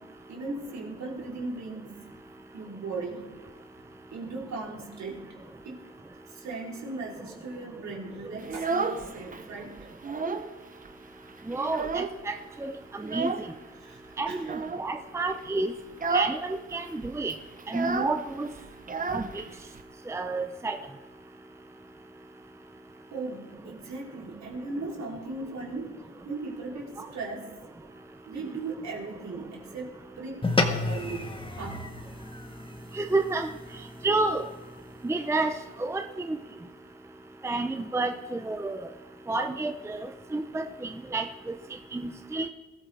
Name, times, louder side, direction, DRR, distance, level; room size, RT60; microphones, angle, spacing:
voice 1, 0.3-2.1 2.5-3.3 4.1-5.2 5.6-5.8 6.3-9.8 13.8-14.0 14.3-14.4 23.1-26.0 26.3-27.7 28.3-29.9 30.2-31.8, right 3 dB, 65° right, -2 dB, 3.7 m, -37 dB
Child speech kid speaking, 8.4-9.4 9.8-10.6 10.9-11.0 11.3-12.4 13.0-13.5 14.4-14.9 15.3-15.5 15.9-16.4 16.7-16.8 17.0-19.8, right 4 dB, 25° right, 1.0 m, -31 dB
voice 2, 11.5-12.3 12.6-13.5 14.2-14.5 14.8-15.7 16.1-17.3 17.7-18.5 19.1-19.4 20.1-20.8 32.9-33.5 34.0-34.5 35.0-35.5 35.8-36.4 37.4-38.8 39.3-41.3 41.9-42.5, right 3 dB, 10° right, 7 dB, 0.6 m, -30 dB
sound 1, 30.4-35.0, left 2 dB, 15° left, 1.5 m, -32 dB
21.0 x 14.0 x 3.4 m, 1.2 s
cardioid pair, 90°, 30 cm